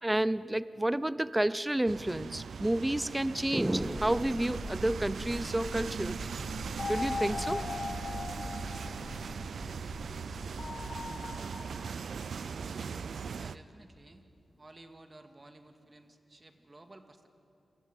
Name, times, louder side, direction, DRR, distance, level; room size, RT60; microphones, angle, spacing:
voice 1, 0.0-6.3 6.9-7.7, right 1 dB, 15° right, 0.6 m, -30 dB
sound 1, 1.9-13.6, right 6 dB, 75° right, 0.6 m, -39 dB
sound 2, 3.8-11.2, left 2 dB, 35° left, 2.2 m, -45 dB
sound 3, 6.8-9.4 10.6-11.9, left 4 dB, 55° left, 0.7 m, -39 dB
voice 2, 13.3-14.3 14.6-17.3, right 2 dB, 35° right, 2.3 m, -54 dB
27.5 x 22.0 x 9.2 m
cardioid pair, 55°, 0 cm